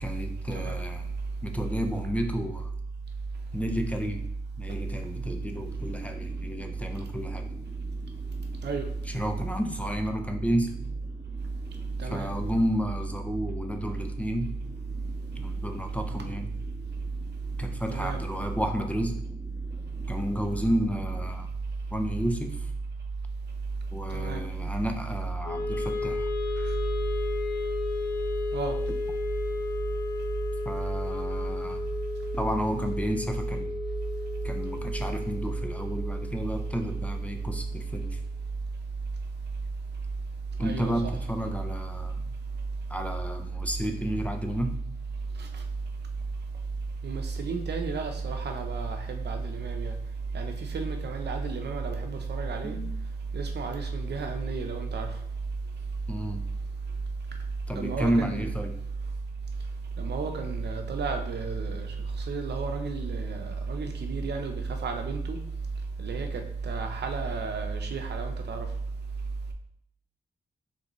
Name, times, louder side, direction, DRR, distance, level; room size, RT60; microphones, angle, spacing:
voice 1, 0.0-1.1 1.4-2.7 3.5-4.3 4.6-7.5 9.1-10.8 12.0-14.6 15.4-16.5 17.6-19.2 20.1-21.5 21.9-22.7 23.9-26.3 30.7-31.9 32.3-33.7 34.4-38.2 40.6-42.3 42.9-44.8 52.6-52.9 56.1-56.4 57.7-58.8, equal, 10° left, 5 dB, 0.5 m, -31 dB
sound 1, 5.2-21.3, equal, 10° right, 1.9 m, -48 dB
Wind instrument woodwind instrument, 25.4-37.7, left 4 dB, 60° left, 0.6 m, -34 dB
voice 2, 40.6-40.9 45.4-45.6 47.0-49.9 50.3-52.8 53.3-55.1 57.8-58.5 60.0-61.9 62.3-65.4 66.0-68.7, right 4 dB, 70° right, 5 dB, 0.7 m, -32 dB
5.0 x 3.4 x 3.1 m, 0.71 s
cardioid pair, 95°, 18 cm